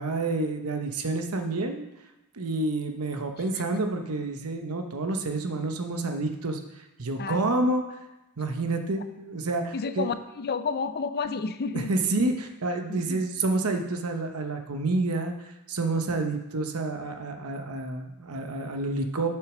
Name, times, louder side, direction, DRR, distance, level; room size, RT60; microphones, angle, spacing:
voice 1, 0.0-1.8 2.3-6.6 7.0-8.0 8.4-10.1 11.7-15.3 15.7-19.3, right 2 dB, 75° right, 5 dB, 0.9 m, -28 dB
voice 2, 7.2-7.5 9.7-12.0 12.9-13.2 16.1-16.3, left 5 dB, 45° left, 11 dB, 0.5 m, -31 dB
6.8 x 6.3 x 6.1 m, 0.99 s
head